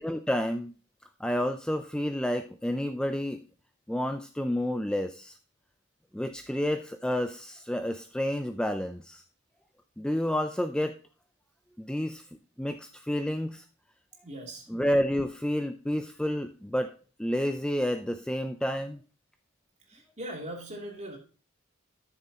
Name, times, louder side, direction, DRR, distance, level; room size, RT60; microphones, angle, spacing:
voice 1, 0.0-0.7 1.2-3.4 3.9-5.4 6.1-9.2 10.0-11.0 11.8-12.2 12.6-13.6 14.7-16.9 17.2-19.0, equal, 5° left, 7 dB, 0.4 m, -30 dB
voice 2, 14.2-14.7 19.9-21.2, right 1 dB, 35° right, 0 dB, 2.7 m, -40 dB
12.5 x 6.8 x 2.9 m, 0.37 s
head